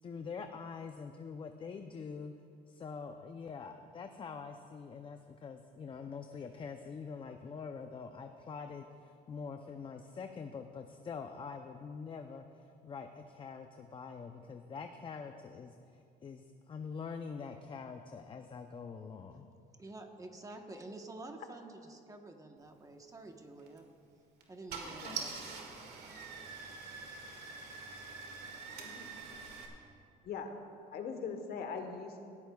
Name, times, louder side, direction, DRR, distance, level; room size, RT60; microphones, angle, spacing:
voice 1, 0.0-2.3 2.7-19.5, left 5 dB, 30° left, 6 dB, 0.5 m, -45 dB
voice 2, 19.8-23.9 24.5-25.6 26.0-26.1, right 2 dB, 20° right, 4 dB, 1.1 m, -49 dB
Car / Engine starting, 23.6-23.8 24.4-24.5 24.7-29.7, right 5 dB, 70° right, 2.0 m, -44 dB
voice 3, 28.7-29.0 30.2-30.5 30.9-32.2, left 5 dB, 65° left, 5 dB, 1.3 m, -41 dB
17.5 x 14.0 x 2.3 m, 2.4 s
cardioid pair, 110°, 17 cm